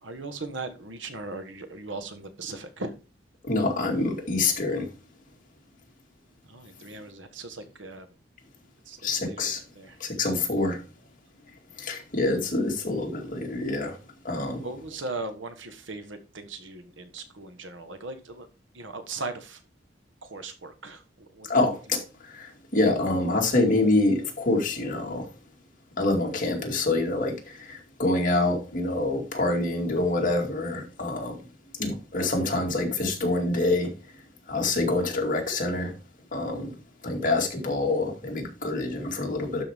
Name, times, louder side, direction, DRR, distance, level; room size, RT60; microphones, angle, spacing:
voice 1, 0.0-2.9 6.5-8.1 8.9-10.0 14.6-18.5 18.7-19.6 20.2-21.5, right 3 dB, 90° right, 1.4 m, -38 dB
voice 2, 3.5-4.9 9.0-9.6 10.0-10.8 11.8-14.0 14.2-14.6 21.5-25.3 26.0-31.4 31.8-33.9 34.5-35.9 36.3-36.7 37.0-39.6, left 2 dB, 45° left, 2.3 m, -26 dB
12.0 x 4.6 x 3.6 m
head